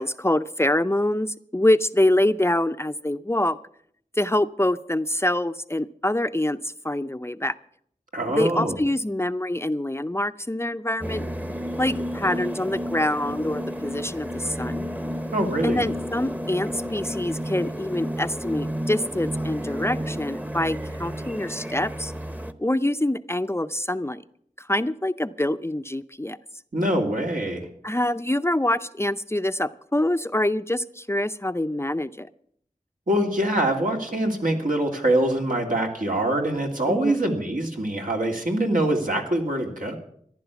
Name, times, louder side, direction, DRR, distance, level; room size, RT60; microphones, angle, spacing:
voice 1, 0.0-3.6 4.2-7.5 8.3-11.2 11.8-14.9 15.6-22.1 22.6-24.2 24.6-26.4 27.8-32.3 36.9-37.2, left 1 dB, 20° left, 11 dB, 0.6 m, -25 dB
voice 2, 8.1-8.8 15.3-15.9 26.7-27.7 33.1-40.0, right 1 dB, 80° right, 1 dB, 2.6 m, -24 dB
sound 1, 11.0-22.5, equal, 10° right, 0.9 m, -31 dB
14.5 x 11.0 x 7.0 m, 0.66 s
wide cardioid pair, 50°, 14 cm